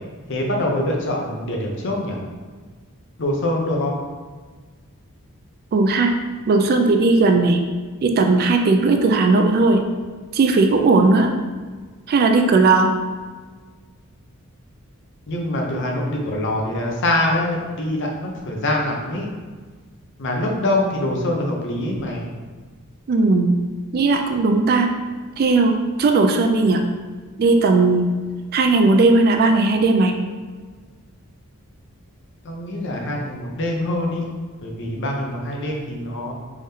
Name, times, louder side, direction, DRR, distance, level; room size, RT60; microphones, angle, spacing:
voice 1, 0.3-2.2 3.2-4.0 15.3-19.3 20.2-22.3 32.4-34.2 34.6-36.3, left 1 dB, 55° left, 0 dB, 0.6 m, -24 dB
voice 2, 5.7-6.2 6.5-7.7 8.0-9.8 10.3-11.3 12.1-12.9 23.1-23.6 23.9-25.0 25.4-26.8 27.4-28.1 28.5-30.1, right 3 dB, 45° right, 5 dB, 0.3 m, -17 dB
3.5 x 3.5 x 2.7 m, 1.4 s
head